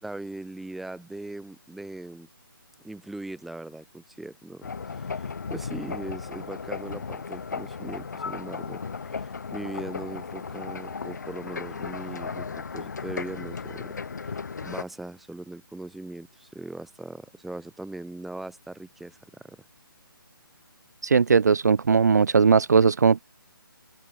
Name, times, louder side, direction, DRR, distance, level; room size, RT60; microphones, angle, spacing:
voice 1, 0.0-2.3 2.8-8.8 9.1-14.0 14.6-19.6, right 2 dB, ahead, 3.6 m, -40 dB
sound 1, 4.6-14.8, left 5 dB, 50° left, 3.6 m, -35 dB
voice 2, 21.0-23.2, right 5 dB, 50° right, 0.7 m, -19 dB
open air
hypercardioid pair, 175°, 12 cm